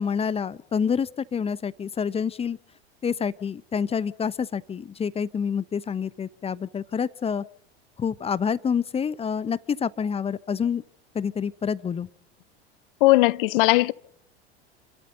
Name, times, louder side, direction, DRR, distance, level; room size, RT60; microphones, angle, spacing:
voice 1, 0.0-2.6 3.0-7.4 8.0-10.8 11.1-12.1, left 6 dB, 20° left, 0.8 m, -27 dB
voice 2, 13.0-13.9, left 20 dB, 55° left, 0.8 m, -18 dB
28.5 x 13.0 x 8.2 m
figure-of-eight pair, 80°, 32 cm